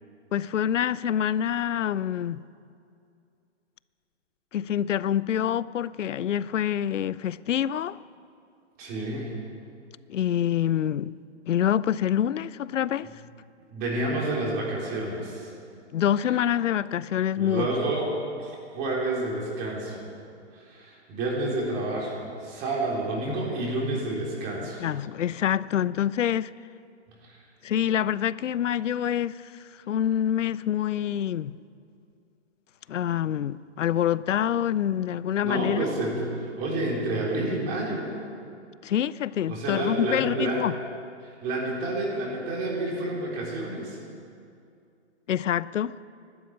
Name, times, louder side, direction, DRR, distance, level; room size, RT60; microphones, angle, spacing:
voice 1, 0.3-2.4 4.5-8.0 10.1-11.1 11.5-13.1 15.9-17.7 24.8-26.5 27.6-29.5 29.9-31.6 32.9-35.8 38.8-40.7 45.3-46.0, left 10 dB, 90° left, 0.6 m, -26 dB
voice 2, 8.8-9.3 13.0-13.1 13.7-15.5 16.2-16.4 17.4-18.1 18.4-20.1 20.5-24.8 27.2-27.4 35.4-38.1 39.5-40.7 41.2-44.0, right 2 dB, 25° right, 3.7 m, -29 dB
13.5 x 12.0 x 8.7 m
hypercardioid pair, 150°, 36 cm